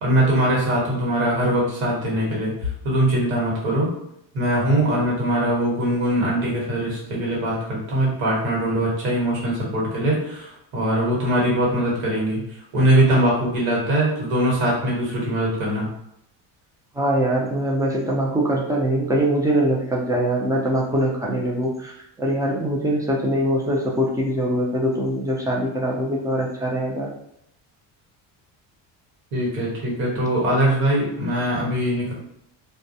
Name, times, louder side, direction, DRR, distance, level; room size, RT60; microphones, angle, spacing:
voice 1, 0.0-3.9 4.3-12.4 12.7-15.9 29.3-32.1, right 1 dB, 80° right, -4 dB, 1.3 m, -22 dB
voice 2, 17.0-21.9 22.2-27.1, right 1 dB, 10° right, -2 dB, 0.4 m, -22 dB
2.2 x 2.1 x 2.7 m, 0.77 s
cardioid pair, 105°, 46 cm